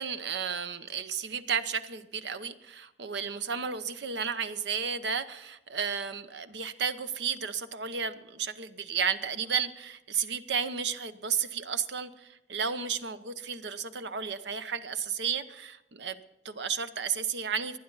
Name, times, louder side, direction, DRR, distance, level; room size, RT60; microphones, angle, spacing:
voice 1, 0.0-17.8, right 6 dB, 70° right, 11 dB, 0.8 m, -33 dB
24.0 x 9.3 x 4.0 m, 0.97 s
head